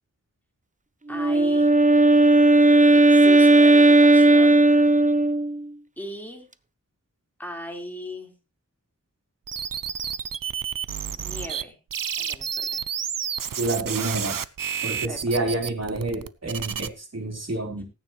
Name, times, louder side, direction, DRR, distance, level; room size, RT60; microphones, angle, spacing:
voice 1, 1.1-1.7 2.9-4.7 6.0-6.5 7.4-8.3 11.1-11.8 12.2-12.8 15.1-15.2, equal, 5° left, 1 dB, 4.4 m, -37 dB
Wind instrument woodwind instrument, 1.1-5.6, right 2 dB, 25° right, 0.7 m, -16 dB
sound 1, 9.5-11.6 11.9-16.9, right 8 dB, 85° right, 0.6 m, -30 dB
voice 2, 13.6-14.4 14.8-17.8, right 2 dB, 50° right, 1 dB, 4.3 m, -28 dB
18.5 x 9.4 x 3.2 m, 0.29 s
wide cardioid pair, 65°, 32 cm